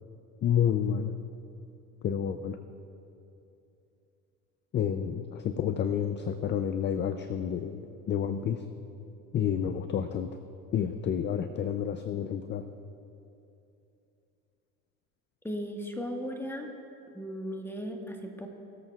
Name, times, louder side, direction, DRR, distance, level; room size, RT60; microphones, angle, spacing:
voice 1, 0.4-1.1 2.0-2.6 4.7-8.6 9.3-10.3 10.7-12.7, left 8 dB, 25° left, 10 dB, 0.4 m, -29 dB
voice 2, 15.4-16.7 17.1-18.5, equal, 5° left, 2 dB, 1.5 m, -36 dB
22.0 x 7.9 x 2.4 m, 2.7 s
hypercardioid pair, 85°, 42 cm